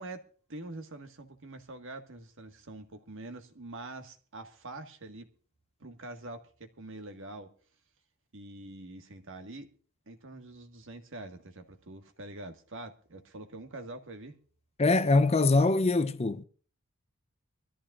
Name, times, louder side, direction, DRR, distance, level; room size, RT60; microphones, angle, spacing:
voice 1, 0.0-5.3 5.8-7.5 8.3-9.7 10.1-14.4, right 2 dB, 60° right, 1.7 m, -45 dB
voice 2, 14.8-16.4, left 3 dB, 30° left, 0.6 m, -23 dB
24.0 x 14.0 x 2.5 m
head